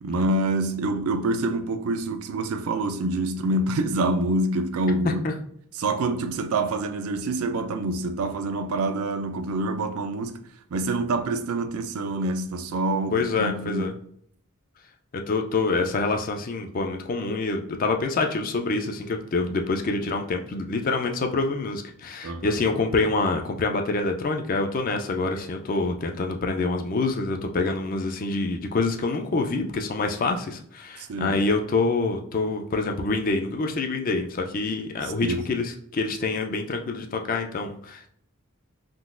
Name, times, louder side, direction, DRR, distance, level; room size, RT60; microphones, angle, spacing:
voice 1, 0.0-5.2 5.8-10.4 10.7-13.9 22.2-22.6 31.0-31.4 35.0-35.5, right 2 dB, 80° right, 0.4 m, -26 dB
voice 2, 13.1-13.9 15.1-38.1, left 3 dB, 40° left, 0.4 m, -26 dB
3.7 x 2.4 x 2.4 m
head